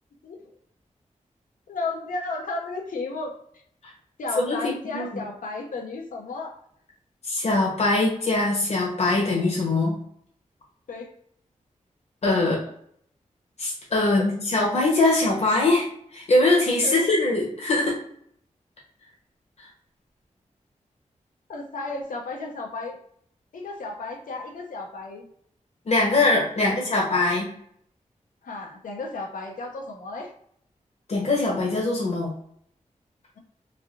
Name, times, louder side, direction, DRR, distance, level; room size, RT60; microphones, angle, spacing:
voice 1, 1.7-3.3 4.2-6.6 10.9-11.1 12.4-12.5 14.2-14.3 16.8-17.1 21.5-23.0 23.5-25.2 26.6-27.0 28.4-30.3, left 3 dB, 85° left, 1 dB, 0.6 m, -33 dB
voice 2, 7.3-10.0 12.2-12.6 13.6-15.9 16.1-17.9 25.9-27.5 31.1-32.3, left 2 dB, 55° left, -4 dB, 0.9 m, -22 dB
3.2 x 2.5 x 2.5 m, 0.66 s
wide cardioid pair, 95°, 13 cm